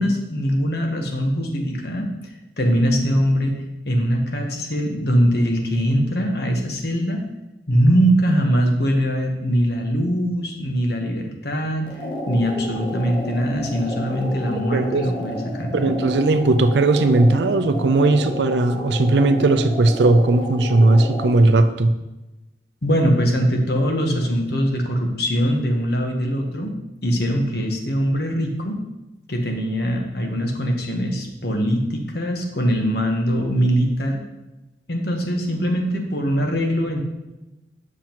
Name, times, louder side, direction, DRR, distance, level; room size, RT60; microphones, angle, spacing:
voice 1, 0.0-2.1 2.6-3.6 3.8-7.2 7.7-11.9 12.3-16.0 22.8-26.7 27.0-28.8 29.3-34.2 34.9-37.0, equal, 65° left, 2 dB, 1.2 m, -22 dB
sound 1, 11.9-21.5, left 1 dB, 30° left, 0.9 m, -31 dB
voice 2, 14.7-15.0 15.7-21.9, right 2 dB, 75° right, 10 dB, 0.5 m, -17 dB
7.3 x 6.1 x 3.0 m, 1.0 s
head